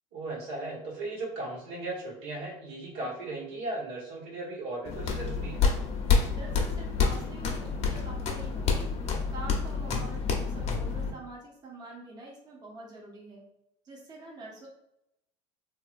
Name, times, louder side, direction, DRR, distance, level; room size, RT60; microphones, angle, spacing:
voice 1, 0.1-5.6, right 2 dB, 75° right, -4 dB, 1.4 m, -37 dB
sound 1, 4.8-11.1, left 5 dB, 45° left, 0.8 m, -28 dB
voice 2, 6.3-8.9 9.3-13.4 13.8-14.7, right 2 dB, 25° right, -3 dB, 0.9 m, -45 dB
3.1 x 2.7 x 2.5 m, 0.80 s
supercardioid pair, 100°, 15 cm